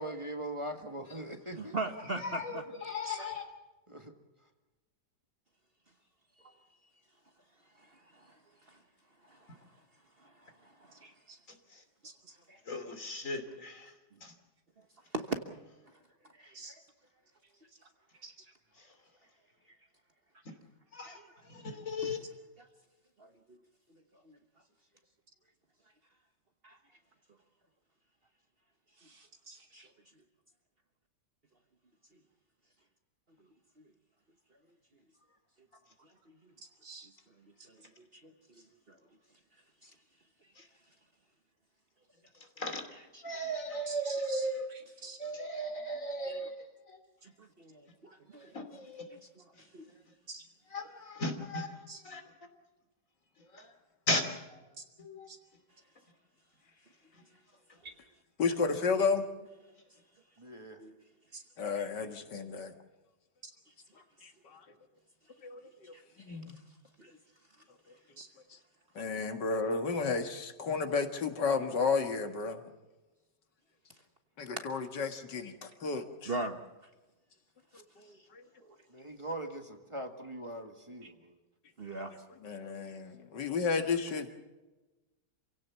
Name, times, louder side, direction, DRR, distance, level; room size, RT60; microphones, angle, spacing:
voice 1, 0.0-1.8 3.9-4.1 60.4-60.8 78.9-81.4, right 1 dB, 20° right, 5 dB, 1.8 m, -41 dB
voice 2, 1.5-2.6 7.8-8.4 8.7-8.8 9.3-9.6 10.2-10.5 10.8-11.1 12.5-12.6 15.1-15.6 16.4-16.6 21.1-21.3 21.7-22.1 22.6-22.7 23.2-23.6 24.2-24.4 26.6-26.8 29.7-29.9 37.7-38.3 38.9-39.0 39.8-39.9 42.9-43.2 45.0-45.2 46.3-46.4 47.2-48.5 49.1-49.4 49.7-49.9 60.8-61.0 65.9-66.0 66.3-66.4 67.0-67.2 76.3-76.6 81.8-82.1, right 2 dB, 40° right, 6 dB, 1.3 m, -41 dB
voice 3, 2.2-3.5 12.7-13.9 14.2-14.3 20.9-21.2 21.5-22.2 40.6-40.7 42.6-42.8 43.2-44.7 45.2-46.5 46.9-47.0 48.4-49.1 50.7-51.7 52.0-52.2 53.5-53.7 54.1-54.3 55.0-55.3, left 1 dB, 50° left, 7 dB, 3.2 m, -36 dB
voice 4, 11.0-11.4 12.0-12.1 16.5-16.7 18.2-18.5 29.0-29.9 36.8-37.1 43.9-45.2 50.3-50.4 51.9-52.0 54.8-54.9 55.3-55.4 57.8-57.9 61.3-61.4 63.4-63.5 68.2-68.3 78.6-78.8 81.0-81.1, right 3 dB, 60° right, 3 dB, 3.2 m, -48 dB
voice 5, 58.4-59.3 61.6-62.7 64.2-64.7 65.4-65.9 66.2-66.5 68.5-68.6 69.0-72.6 74.4-76.3 78.0-78.4 82.4-84.4, left 4 dB, 90° left, 7 dB, 2.4 m, -32 dB
27.5 x 17.0 x 7.1 m, 1.1 s
omnidirectional pair, 1.8 m